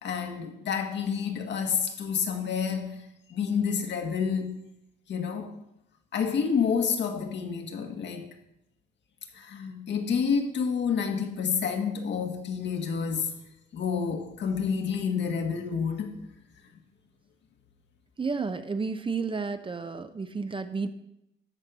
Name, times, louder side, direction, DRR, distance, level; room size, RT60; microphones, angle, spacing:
voice 1, 0.0-4.6 5.1-5.6 6.1-8.4 9.3-13.4 13.7-16.2, left 6 dB, 65° left, 1.7 m, -29 dB
voice 2, 18.2-20.9, right 4 dB, 25° right, 0.8 m, -31 dB
13.0 x 4.5 x 6.7 m
cardioid pair, 90°, 20 cm